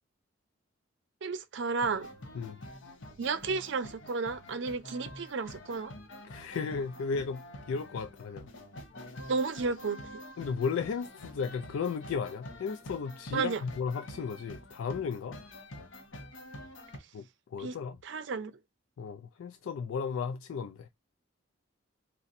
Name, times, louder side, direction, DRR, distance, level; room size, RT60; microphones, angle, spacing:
voice 1, 1.2-2.1 3.2-5.9 9.3-10.0 13.3-13.6 17.6-17.8 18.0-18.5, right 4 dB, 65° right, 0.5 m, -32 dB
sound 1, 1.8-17.0, left 1 dB, 70° left, 0.8 m, -47 dB
voice 2, 6.2-7.4 7.7-8.5 10.4-15.4 17.1-17.2 17.5-18.0 19.0-20.9, left 5 dB, 90° left, 0.3 m, -34 dB
4.0 x 2.1 x 2.6 m
head